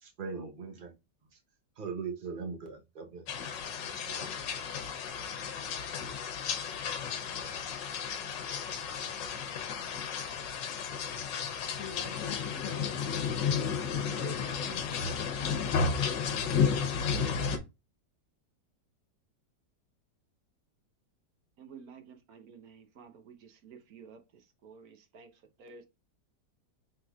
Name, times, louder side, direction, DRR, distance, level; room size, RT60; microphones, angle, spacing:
voice 1, 0.0-1.0 1.3-1.4 1.8-3.3 3.8-4.4, right 5 dB, 45° right, 0.7 m, -40 dB
sound 1, 3.3-17.6, left 6 dB, 80° left, 1.5 m, -33 dB
voice 2, 11.7-13.1 14.2-15.0, left 7 dB, 60° left, 0.8 m, -44 dB
voice 3, 13.8-15.0 21.6-25.9, right 5 dB, 60° right, 1.2 m, -51 dB
5.5 x 3.8 x 2.3 m
omnidirectional pair, 1.9 m